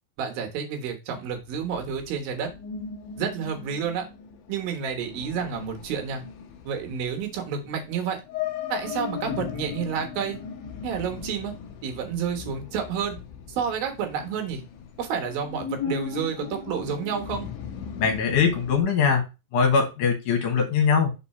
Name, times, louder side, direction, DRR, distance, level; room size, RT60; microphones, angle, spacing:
voice 1, 0.2-2.5 3.2-4.1 4.5-6.2 6.7-8.2 8.7-10.4 10.8-11.5 11.8-13.2 13.5-14.6 15.0-17.5, right 7 dB, 75° right, 4 dB, 3.0 m, -30 dB
sound 1, 1.3-18.8, left 7 dB, 85° left, 1.8 m, -37 dB
voice 2, 18.0-19.3 19.5-21.2, left 6 dB, 65° left, 3 dB, 2.4 m, -22 dB
5.6 x 4.2 x 4.2 m, 0.27 s
omnidirectional pair, 4.3 m